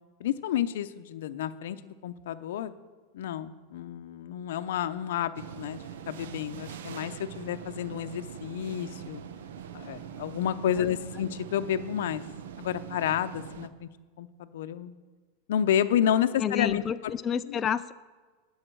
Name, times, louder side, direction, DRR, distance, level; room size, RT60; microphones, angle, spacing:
voice 1, 0.2-2.7 3.1-9.2 9.7-12.2 12.6-13.9 14.2-14.9 15.5-16.8 17.5-17.6, left 10 dB, 80° left, 11 dB, 0.7 m, -30 dB
sound 1, 5.3-13.7, right 8 dB, 85° right, 0.7 m, -43 dB
voice 2, 16.4-17.9, left 8 dB, 25° left, 10 dB, 0.3 m, -29 dB
20.0 x 7.2 x 4.7 m, 1.4 s
supercardioid pair, 145°, 0 cm